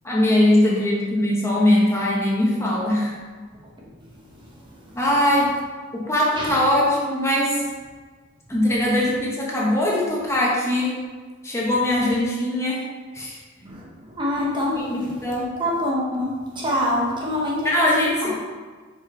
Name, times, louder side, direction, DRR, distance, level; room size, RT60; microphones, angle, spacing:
voice 1, 0.0-3.2 4.9-5.6 5.9-7.6 8.5-11.1 11.4-12.8 13.1-13.4 14.7-15.6 17.6-18.3, left 1 dB, 15° left, -4 dB, 1.0 m, -21 dB
voice 2, 3.8-5.0 6.4-6.6 13.6-17.8 18.2-18.3, left 1 dB, 25° right, -4 dB, 1.0 m, -27 dB
4.9 x 4.6 x 4.3 m, 1.4 s
head